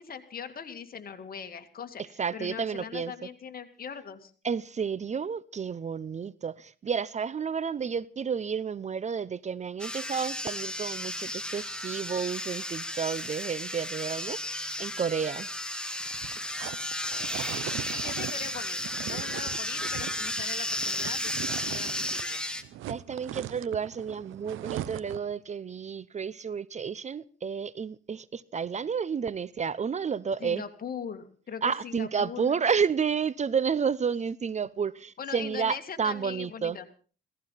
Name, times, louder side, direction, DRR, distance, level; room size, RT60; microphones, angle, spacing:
voice 1, 0.0-2.0 2.3-4.3 17.9-22.4 30.4-32.5 35.2-36.9, left 7 dB, 50° left, 2.4 m, -40 dB
voice 2, 2.2-3.1 4.4-15.5 22.9-30.6 31.6-36.8, right 6 dB, 35° right, 0.7 m, -31 dB
sound 1, 9.8-22.6, left 1 dB, 5° left, 1.9 m, -34 dB
sound 2, 16.0-22.3 22.6-25.3, right 13 dB, 85° right, 0.8 m, -40 dB
17.0 x 15.0 x 5.7 m
cardioid pair, 90°, 20 cm